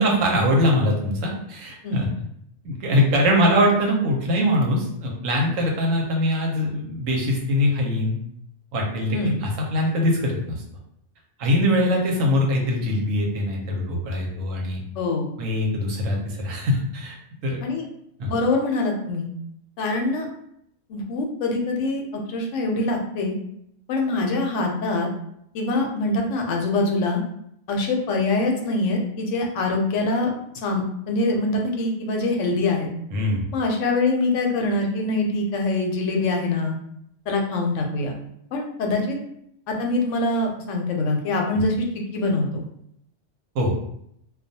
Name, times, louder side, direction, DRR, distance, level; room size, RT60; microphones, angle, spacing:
voice 1, 0.0-2.1 2.6-8.2 8.7-10.6 11.4-14.8 15.4-17.1 17.4-17.6 18.2-18.3 33.1-33.5 43.5-43.7, equal, 85° right, -1 dB, 1.0 m, -22 dB
voice 2, 15.0-15.3 17.6-17.9 18.3-19.3 19.8-20.3 20.9-23.4 23.9-25.1 25.5-27.2 27.7-32.9 33.5-36.8 37.3-38.2 38.5-39.2 39.7-41.9 42.1-42.6, left 2 dB, 75° left, 1 dB, 0.9 m, -24 dB
2.3 x 2.2 x 2.6 m, 0.72 s
omnidirectional pair, 1.3 m